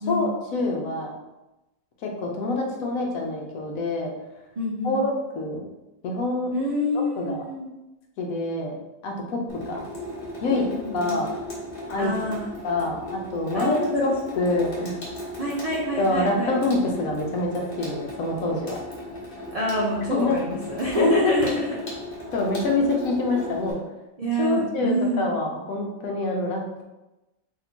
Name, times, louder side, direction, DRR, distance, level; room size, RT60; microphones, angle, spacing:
voice 1, 0.1-1.1 2.0-4.1 4.8-5.6 6.0-6.5 7.2-7.4 8.2-8.8 9.0-9.4 9.7-9.8 10.4-10.6 10.9-11.3 11.9-12.1 12.6-14.9 16.0-18.8 20.1-20.4 20.9-21.3 22.3-23.8 24.4-26.8, left 2 dB, 80° left, 0 dB, 1.1 m, -26 dB
voice 2, 4.6-5.0 6.5-7.7 10.5-11.2 12.0-12.5 13.5-13.9 14.3-14.4 15.4-16.6 19.5-21.8 24.2-25.3, equal, 55° right, -5 dB, 0.4 m, -27 dB
Water tap faucet / Sink (filling or washing), 9.5-23.7, left 1 dB, 45° left, 1.1 m, -36 dB
2.8 x 2.7 x 4.3 m, 1.0 s
omnidirectional pair, 1.4 m